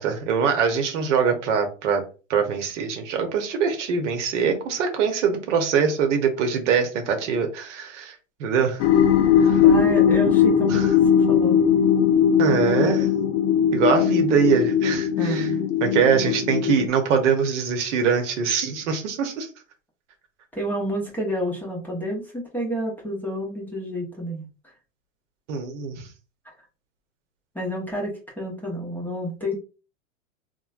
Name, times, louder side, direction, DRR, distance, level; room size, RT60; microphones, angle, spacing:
voice 1, 0.0-2.0 2.3-8.1 8.4-8.8 9.4-9.6 10.7-10.9 12.4-13.1 13.7-15.5 15.8-19.5 25.5-26.0, right 6 dB, 60° right, 0.9 m, -23 dB
sound 1, 8.8-16.9, left 8 dB, 55° left, 0.6 m, -19 dB
voice 2, 9.6-10.9 11.3-11.6 12.5-13.1 15.2-15.6 20.5-24.5 27.5-29.5, equal, 5° left, 0.8 m, -29 dB
3.1 x 2.1 x 2.4 m
hypercardioid pair, 110°, 40 cm